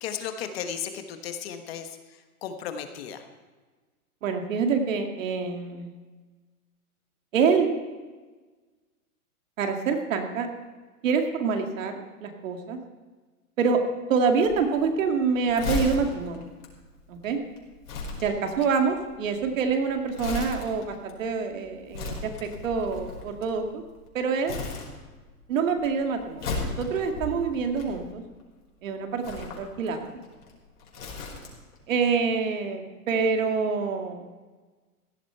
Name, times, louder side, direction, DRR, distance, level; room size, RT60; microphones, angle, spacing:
voice 1, 0.0-2.0 2.4-3.2 18.4-18.5, left 8 dB, 40° left, 7 dB, 1.4 m, -35 dB
voice 2, 4.2-5.9 7.3-7.7 9.6-10.5 11.0-11.9 12.2-12.8 13.6-13.8 14.1-16.5 17.1-17.4 18.2-23.8 24.1-24.6 25.5-28.2 28.8-30.2 31.9-34.2, right 5 dB, 60° right, 4 dB, 2.3 m, -26 dB
Crumpling crinkling, 14.4-24.1 24.4-25.4 25.7-28.4 29.1-31.8 32.1-32.2, left 3 dB, 85° left, 5.2 m, -36 dB
17.0 x 12.5 x 4.5 m, 1.3 s
hypercardioid pair, 165°, 45 cm